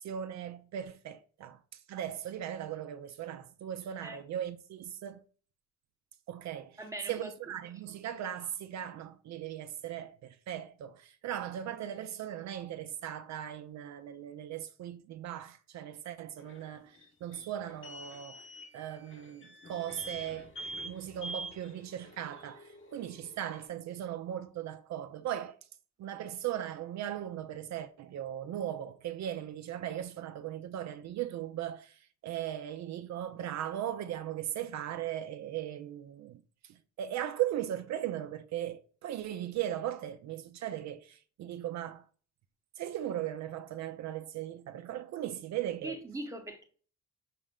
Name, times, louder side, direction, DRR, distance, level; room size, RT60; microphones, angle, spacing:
voice 1, 0.0-5.2 6.3-6.8 7.1-18.4 18.7-25.6 26.0-42.0 42.8-46.0, right 11 dB, 65° right, 0.5 m, -38 dB
voice 2, 6.8-7.3 45.8-46.6, right 1 dB, 10° right, 0.8 m, -40 dB
sound 1, 16.4-23.6, right 1 dB, 40° left, 1.0 m, -46 dB
5.8 x 2.1 x 3.6 m
cardioid pair, 90°, 30 cm